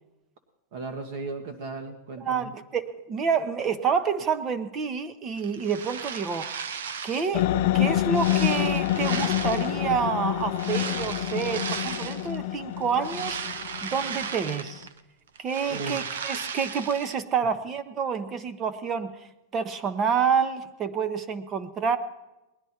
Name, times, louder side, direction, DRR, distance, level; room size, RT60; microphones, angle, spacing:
voice 1, 0.7-2.5 15.7-16.0, right 3 dB, 60° right, 3 dB, 1.5 m, -36 dB
voice 2, 2.2-6.5 7.0-13.4 13.8-14.9 15.4-19.3 19.5-22.0, right 6 dB, 25° right, 11 dB, 0.8 m, -28 dB
sound 1, 5.4-7.4 7.8-9.9 10.5-12.4 12.8-15.0 15.3-17.2, right 6 dB, 90° right, 0.8 m, -35 dB
sound 2, 7.3-14.7, left 13 dB, 60° left, 0.5 m, -27 dB
19.5 x 10.5 x 4.3 m, 0.98 s
supercardioid pair, 145°, 0 cm